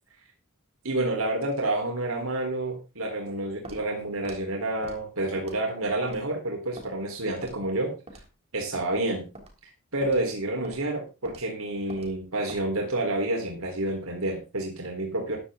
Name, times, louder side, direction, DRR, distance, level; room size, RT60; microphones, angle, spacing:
voice 1, 0.8-8.0 8.5-9.2 9.9-15.4, right 2 dB, 80° right, 1 dB, 3.9 m, -29 dB
Walk footsteps, 3.7-3.8 4.3-4.4 4.8-5.0 5.4-5.7 6.1-6.2 6.8-6.9 7.4-7.6 8.1-8.3 8.7-8.9 9.4-9.5 10.0-10.2 10.6-10.8 11.3-11.4 11.9-12.1 12.5-12.7, right 2 dB, 30° right, 3.6 m, -44 dB
14.0 x 10.5 x 3.8 m, 0.28 s
head